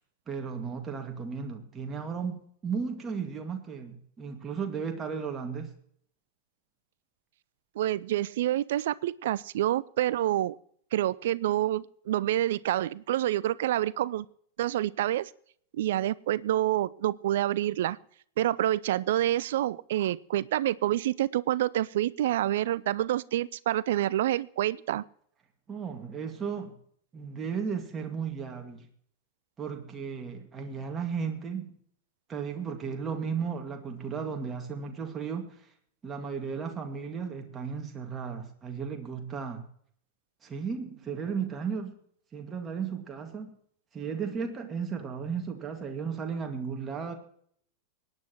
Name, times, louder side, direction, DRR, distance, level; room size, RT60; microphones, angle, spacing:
voice 1, 0.3-5.7 25.7-26.8 27.1-28.9 29.6-31.8 32.3-35.6 36.0-39.6 40.4-42.0 42.3-43.5 43.9-47.1, right 6 dB, 20° right, 3 dB, 2.0 m, -35 dB
voice 2, 7.8-10.6 10.9-14.3 14.6-15.3 15.7-18.0 18.4-25.0, right 13 dB, 55° right, 21 dB, 0.4 m, -27 dB
24.5 x 9.6 x 3.0 m, 0.63 s
figure-of-eight pair, 90°, 0 cm